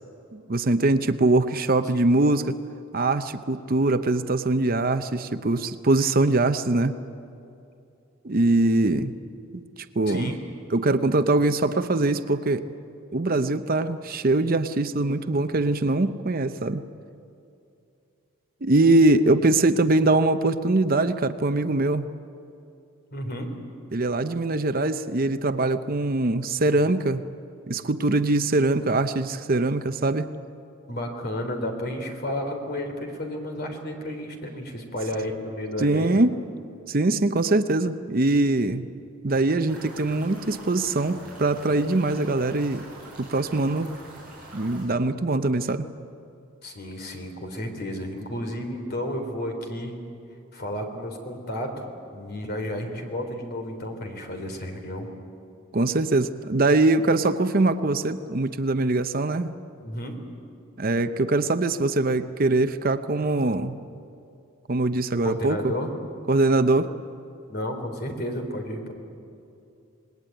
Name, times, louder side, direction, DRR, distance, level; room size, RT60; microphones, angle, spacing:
voice 1, 0.3-2.6 2.9-6.9 8.2-9.1 9.5-9.6 10.0-10.3 10.7-12.7 13.1-16.8 18.6-22.1 23.9-27.2 27.7-30.3 35.8-36.3 36.9-38.9 39.2-42.9 43.2-43.9 44.5-45.9 55.7-59.5 60.8-63.8 64.7-65.7 66.3-66.9, right 2 dB, 40° right, 10 dB, 0.7 m, -22 dB
voice 2, 10.1-10.4 23.1-23.5 30.9-36.2 46.6-50.0 50.5-51.9 52.1-55.1 59.8-60.2 65.2-65.9 67.5-68.9, left 1 dB, 45° left, 4 dB, 3.6 m, -32 dB
sound 1, 39.7-44.8, right 2 dB, 5° right, 6.9 m, -44 dB
27.0 x 20.5 x 9.1 m, 2.6 s
head